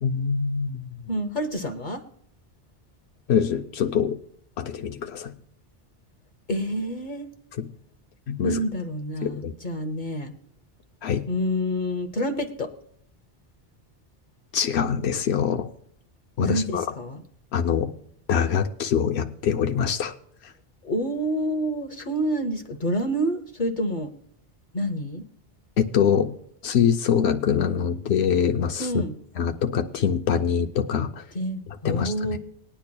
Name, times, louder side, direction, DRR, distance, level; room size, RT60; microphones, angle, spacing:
voice 1, 0.0-1.0 3.3-4.2 4.6-5.4 7.5-7.7 8.3-8.6 9.2-9.5 11.0-11.3 14.5-15.7 16.4-16.9 17.5-17.9 18.3-20.1 20.4-20.5 25.8-26.4 26.6-29.0 29.4-31.3 31.8-32.4, left 7 dB, 85° left, 5 dB, 0.9 m, -24 dB
voice 2, 1.1-2.0 6.5-7.3 8.4-10.3 11.3-12.7 16.4-17.2 20.8-24.1 24.7-25.2 28.8-29.1 31.3-32.4, equal, 50° left, 5 dB, 1.0 m, -28 dB
20.0 x 10.0 x 2.2 m, 0.65 s
omnidirectional pair, 1.1 m